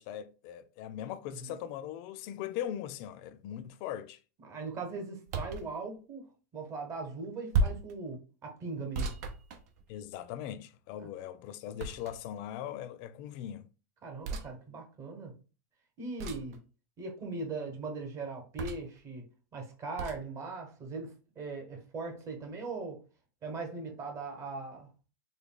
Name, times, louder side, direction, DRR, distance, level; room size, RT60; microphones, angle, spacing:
voice 1, 0.0-4.2 9.9-13.7, left 10 dB, 50° left, 0.4 m, -40 dB
voice 2, 1.3-1.6 4.4-6.3 6.5-9.1 11.0-11.1 14.0-15.3 16.0-16.6 17.0-19.3 19.5-23.0 23.4-24.9, right 3 dB, 30° right, 1.1 m, -40 dB
sound 1, 5.3-5.7 7.5-7.9 8.9-10.1 11.8-12.4 14.2-14.5 16.2-16.6 18.6-19.0 20.0-20.2, right 3 dB, 65° right, 0.7 m, -33 dB
3.3 x 2.2 x 3.7 m
supercardioid pair, 135°, 10 cm